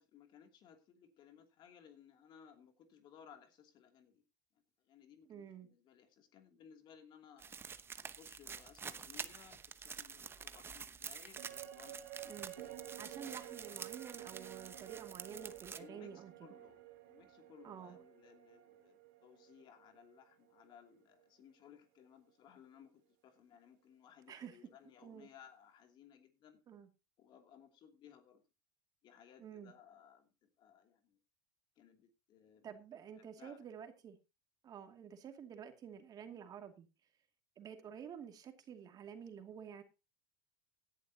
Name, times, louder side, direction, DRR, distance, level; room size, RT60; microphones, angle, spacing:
voice 1, 0.0-4.2 4.8-12.0 12.5-12.7 13.5-13.6 15.7-26.6 27.2-28.4 29.0-31.2 31.8-32.7 33.2-33.7, left 8 dB, 45° left, 2.8 m, -61 dB
voice 2, 5.3-5.7 12.2-12.5 13.0-16.3 17.6-18.0 24.3-24.6 25.0-25.3 26.7-26.9 29.4-29.7 32.6-34.2 34.6-36.9 37.6-39.8, right 8 dB, 40° right, 2.4 m, -50 dB
sound 1, 7.4-15.8, right 6 dB, 20° right, 0.9 m, -48 dB
sound 2, 11.4-20.9 21.2-21.3, right 13 dB, 75° right, 2.8 m, -52 dB
17.0 x 11.0 x 2.9 m
supercardioid pair, 110°, 11 cm